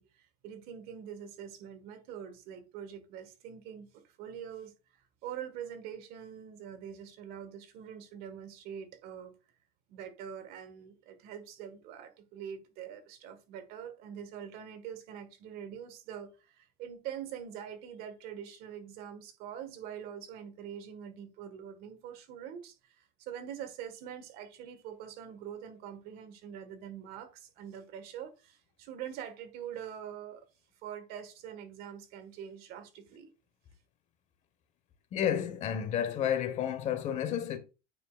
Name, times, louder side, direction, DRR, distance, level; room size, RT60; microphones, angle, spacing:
voice 1, 0.0-9.3 9.9-30.4 30.8-33.3, right 9 dB, 60° right, 1.6 m, -44 dB
voice 2, 35.1-37.6, left 9 dB, 40° left, 1.2 m, -31 dB
9.2 x 5.0 x 2.4 m
cardioid pair, 140°, 18 cm